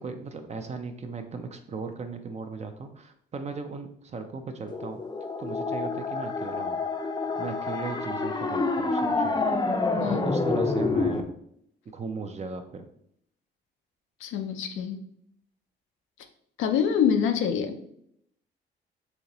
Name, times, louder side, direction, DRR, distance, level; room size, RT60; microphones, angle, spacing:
voice 1, 0.0-5.0 5.4-6.8 7.4-9.5 10.0-11.3 11.9-12.9, right 4 dB, 35° right, 6 dB, 0.4 m, -37 dB
sound 1, 4.7-11.2, left 3 dB, 20° left, 0.5 m, -28 dB
voice 2, 14.2-15.0 16.6-17.9, left 7 dB, 85° left, 5 dB, 0.5 m, -26 dB
4.1 x 2.8 x 2.9 m, 0.70 s
cardioid pair, 90°, 20 cm